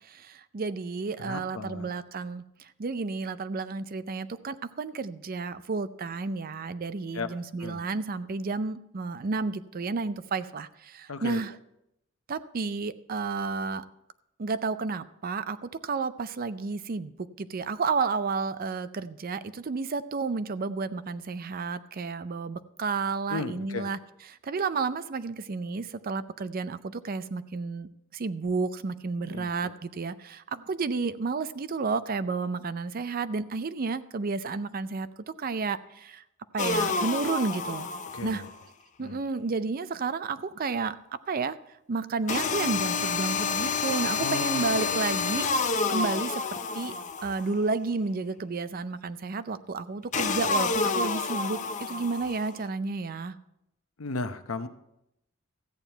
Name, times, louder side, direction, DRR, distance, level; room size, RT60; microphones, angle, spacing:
voice 1, 0.0-11.5 12.3-13.8 14.4-24.0 24.3-35.1 35.4-36.2 36.5-37.9 38.2-38.4 39.0-41.0 41.3-41.6 41.9-46.9 47.2-53.4, right 4 dB, 45° right, 13 dB, 0.5 m, -31 dB
voice 2, 1.2-1.9 7.1-7.3 7.6-7.8 11.1-11.4 23.3-23.9 29.3-29.7 38.1-38.5 39.0-39.2 44.2-45.2 54.0-54.7, left 3 dB, 85° left, 9 dB, 0.8 m, -35 dB
sound 1, 36.6-38.5 42.3-47.6 50.1-52.5, left 4 dB, 35° left, 0.6 m, -29 dB
14.0 x 9.0 x 4.5 m, 0.83 s
head